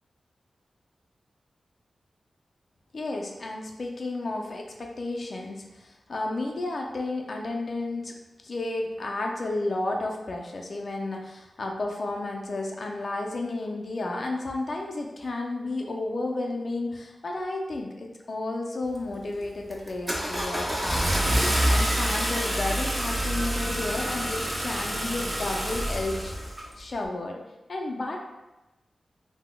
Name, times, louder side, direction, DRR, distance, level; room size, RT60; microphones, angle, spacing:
voice 1, 2.9-8.1 8.4-26.3 26.8-27.4 27.7-28.2, left 2 dB, 50° left, 1 dB, 0.3 m, -32 dB
Car / Engine starting, 18.9-19.2 19.7-26.7, equal, 20° right, 0.4 m, -27 dB
3.7 x 2.0 x 2.2 m, 1.0 s
wide cardioid pair, 135°, 0 cm